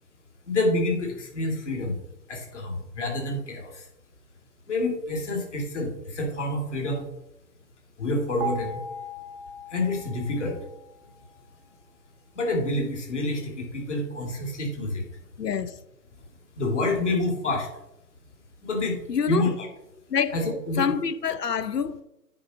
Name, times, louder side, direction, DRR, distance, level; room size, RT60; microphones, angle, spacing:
voice 1, 0.5-2.0 2.3-3.8 4.7-7.1 8.0-8.8 9.7-10.6 12.3-15.0 16.6-17.7 18.6-19.0 19.3-19.7 20.3-20.9, left 2 dB, 45° left, 2.6 m, -28 dB
sound 1, 8.4-11.4, right 2 dB, 5° right, 0.9 m, -38 dB
voice 2, 15.4-15.7 19.1-19.5 20.1-20.3 20.8-22.0, left 7 dB, 75° left, 0.9 m, -26 dB
9.6 x 4.1 x 5.7 m
figure-of-eight pair, 150°, 48 cm